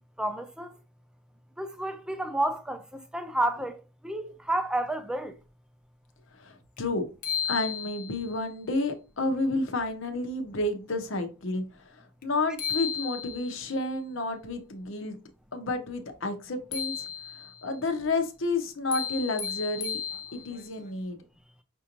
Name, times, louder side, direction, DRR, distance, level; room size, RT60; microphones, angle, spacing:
voice 1, 0.2-0.8 1.6-3.8 4.0-5.4, right 1 dB, 5° right, 0.4 m, -30 dB
voice 2, 6.3-7.1 7.5-15.2 15.5-17.1 17.4-20.0 20.3-21.2, left 2 dB, 70° left, 0.8 m, -31 dB
sound 1, 6.8-6.9 7.2-8.3 12.2-12.3 12.6-13.6 16.7-17.6 18.9-20.6, left 7 dB, 40° left, 0.7 m, -34 dB
5.5 x 2.6 x 2.9 m
head